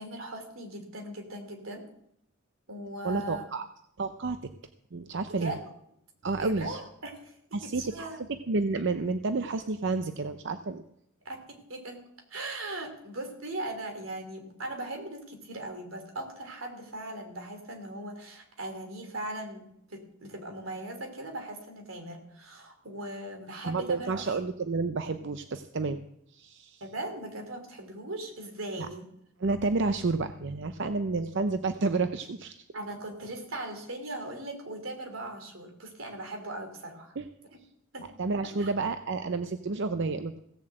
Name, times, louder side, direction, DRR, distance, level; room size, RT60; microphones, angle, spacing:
voice 1, 0.0-1.9 2.7-3.5 5.4-5.7 6.4-8.2 11.2-12.0 12.3-24.4 26.8-29.1 32.7-37.1 37.9-38.1 38.6-38.7, right 1 dB, 90° right, 5 dB, 3.1 m, -39 dB
voice 2, 3.0-3.6 4.0-4.5 4.9-5.5 6.2-6.8 7.5-10.8 23.7-26.0 26.3-26.8 28.8-28.9 29.4-32.7 37.2-37.3 38.2-40.4, right 3 dB, 60° right, 9 dB, 0.6 m, -30 dB
16.5 x 7.2 x 7.8 m, 0.73 s
head